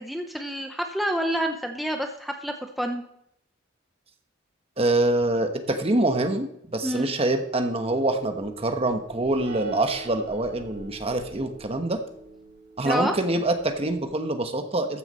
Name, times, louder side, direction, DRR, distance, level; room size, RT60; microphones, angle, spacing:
voice 1, 0.0-3.0 6.8-7.1 12.8-13.1, equal, ahead, 3 dB, 0.7 m, -28 dB
voice 2, 4.8-12.0 12.8-15.0, right 2 dB, 30° right, 6 dB, 1.1 m, -25 dB
sound 1, 7.8-14.1, right 3 dB, 60° right, 5.8 m, -44 dB
14.5 x 6.6 x 5.5 m, 0.74 s
head